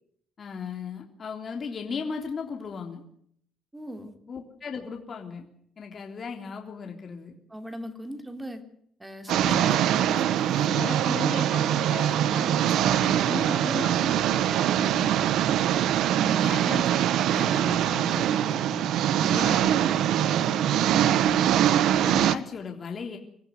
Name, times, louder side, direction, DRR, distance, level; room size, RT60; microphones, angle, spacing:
voice 1, 0.4-3.0 4.3-5.5 5.8-7.4 9.3-9.9 10.7-15.1 16.4-18.9 19.3-21.4 21.9-23.2, left 5 dB, 40° left, 2 dB, 3.5 m, -37 dB
voice 2, 3.7-4.2 7.5-8.6 9.0-11.2 16.1-16.6 19.2-19.5, equal, 10° right, 6 dB, 3.4 m, -40 dB
sound 1, 9.3-22.3, right 11 dB, 75° right, 1.1 m, -23 dB
24.5 x 15.0 x 9.4 m, 0.68 s
cardioid pair, 105°, 0 cm